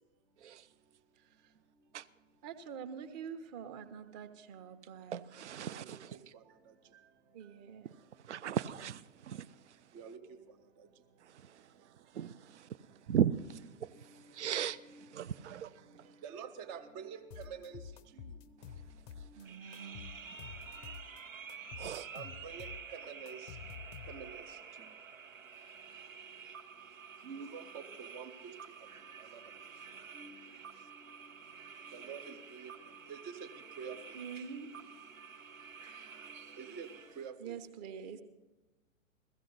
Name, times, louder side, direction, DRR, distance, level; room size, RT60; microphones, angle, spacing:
voice 1, 1.2-1.5 2.4-5.3 7.3-7.9 19.4-20.1 34.1-34.7 37.4-38.2, right 7 dB, 35° right, 1.0 m, -46 dB
voice 2, 5.1-6.2 7.8-9.9 11.2-16.2 18.6-18.7 19.2-19.6 20.5-20.8 21.8-22.1, right 9 dB, 60° right, 0.6 m, -38 dB
voice 3, 9.9-10.4 14.1-14.2 14.8-15.1 16.2-17.8 19.3-19.4 22.1-23.5 24.1-24.4 27.2-28.5 29.2-29.4 30.1-30.5 31.9-32.7 33.1-33.4 33.8-34.0 36.6-36.9 37.2-37.6, right 6 dB, 15° right, 0.4 m, -47 dB
sound 1, 17.3-19.4 19.7-21.2 21.5-24.4, left 7 dB, 30° left, 0.6 m, -49 dB
sound 2, 19.4-37.3, right 6 dB, 80° right, 1.0 m, -50 dB
16.0 x 15.0 x 4.0 m
figure-of-eight pair, 115°, 40 cm